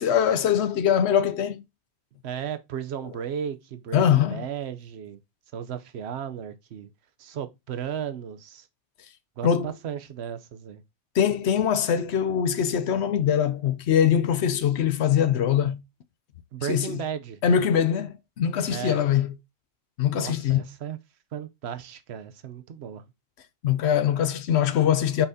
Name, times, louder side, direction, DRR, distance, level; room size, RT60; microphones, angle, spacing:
voice 1, 0.0-1.6 3.9-4.4 9.4-9.7 11.1-15.8 16.7-17.0 17.4-19.3 20.0-20.6 23.6-25.3, left 9 dB, 85° left, 0.9 m, -22 dB
voice 2, 2.2-5.2 5.5-6.9 7.2-8.7 9.4-10.8 16.5-17.4 18.7-19.0 20.1-21.0 21.3-23.0, right 8 dB, 80° right, 1.0 m, -35 dB
6.9 x 5.6 x 2.7 m
omnidirectional pair, 1.1 m